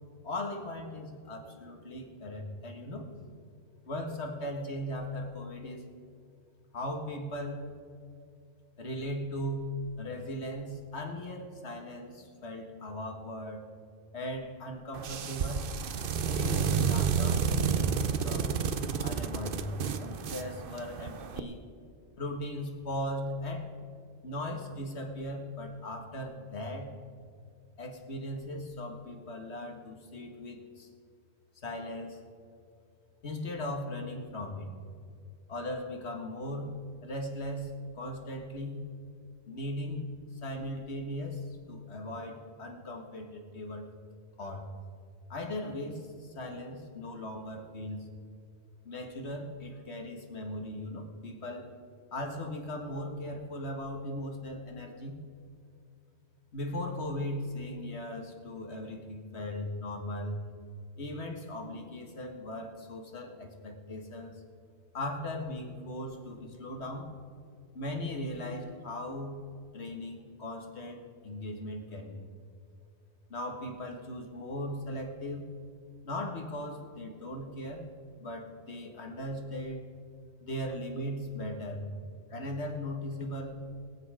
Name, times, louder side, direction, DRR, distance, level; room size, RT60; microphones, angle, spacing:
voice 1, 0.2-3.1 3.9-5.9 6.7-7.6 8.8-9.7 10.0-13.6 14.1-15.6 16.3-18.5 19.0-21.7 22.2-23.7 24.2-26.9 27.8-30.9 31.6-32.2 33.2-34.7 35.5-36.7 37.0-38.8 39.5-40.1 40.4-43.9 44.4-44.7 45.3-48.1 48.9-51.7 52.1-55.2 56.5-60.4 61.0-64.4 64.9-67.1 67.7-69.4 69.7-72.2 73.3-75.5 76.0-77.9 78.2-79.8 80.4-81.8 82.3-83.6, left 1 dB, 85° left, 3 dB, 1.9 m, -38 dB
sound 1, 14.9-21.4, right 6 dB, 60° right, 0.9 m, -30 dB
22.5 x 7.9 x 4.9 m, 2.4 s
omnidirectional pair, 1.1 m